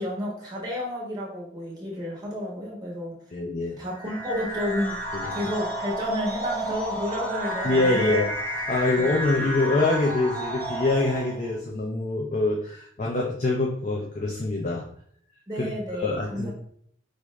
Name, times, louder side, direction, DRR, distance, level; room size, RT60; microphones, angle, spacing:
voice 1, 0.0-3.1 3.8-4.9 5.3-8.3 9.0-9.1 15.5-16.5, left 1 dB, 20° right, -5 dB, 1.2 m, -31 dB
voice 2, 3.3-3.8 5.1-5.3 7.6-8.2 8.7-14.9 15.6-16.5, left 2 dB, 40° left, -1 dB, 0.5 m, -25 dB
sound 1, 3.9-11.5, right 1 dB, 10° left, 0.9 m, -31 dB
4.7 x 2.6 x 3.1 m, 0.64 s
head